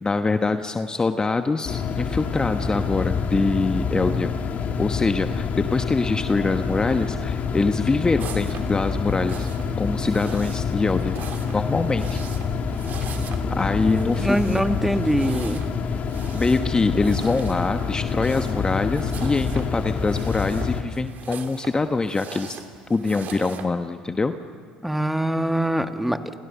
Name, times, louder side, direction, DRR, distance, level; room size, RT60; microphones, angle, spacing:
voice 1, 0.0-4.3 4.8-9.5 9.8-11.2 11.5-12.2 13.6-14.4 16.3-22.6 22.9-24.3, left 3 dB, 20° left, 8 dB, 1.1 m, -24 dB
sound 1, 1.6-20.8, left 5 dB, 45° left, 2.4 m, -27 dB
sound 2, 8.2-23.7, right 8 dB, 50° right, 2.4 m, -42 dB
voice 2, 13.9-15.6 24.8-26.2, right 1 dB, 5° right, 8 dB, 1.8 m, -23 dB
30.0 x 27.5 x 6.9 m, 2.1 s
hypercardioid pair, 60°, 4 cm